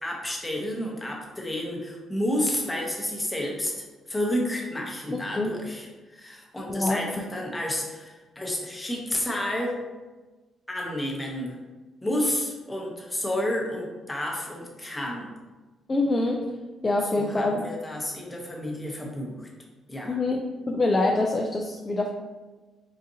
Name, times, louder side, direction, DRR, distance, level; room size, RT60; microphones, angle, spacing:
voice 1, 0.0-9.8 10.7-11.6 12.0-15.3 17.0-19.5 19.9-20.2, left 1 dB, 15° left, -1 dB, 0.8 m, -30 dB
voice 2, 6.7-7.0 15.9-16.5 16.8-17.7 20.1-20.4 20.7-22.1, left 2 dB, 30° left, 1 dB, 0.3 m, -25 dB
3.8 x 2.4 x 2.7 m, 1.2 s
cardioid pair, 90°, 0 cm